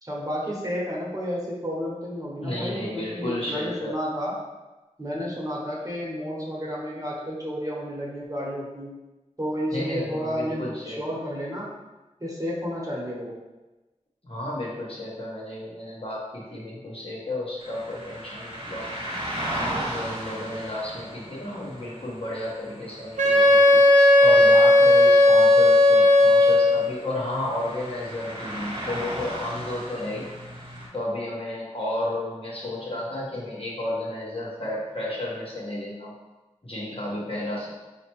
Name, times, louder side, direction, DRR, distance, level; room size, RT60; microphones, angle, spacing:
voice 1, 0.0-4.3 5.0-8.9 9.4-11.7 12.2-13.4, equal, 30° right, -5 dB, 1.1 m, -31 dB
voice 2, 2.4-3.9 9.7-11.2 14.2-18.9 19.5-23.8 24.2-30.2 30.9-36.2 36.6-37.7, left 1 dB, 50° left, -6 dB, 1.2 m, -32 dB
sound 1, 17.6-30.9, right 1 dB, 45° right, 1.2 m, -37 dB
Wind instrument woodwind instrument, 23.2-26.9, left 2 dB, 75° right, 0.7 m, -15 dB
4.3 x 2.8 x 3.0 m, 1.1 s
wide cardioid pair, 45°, 12 cm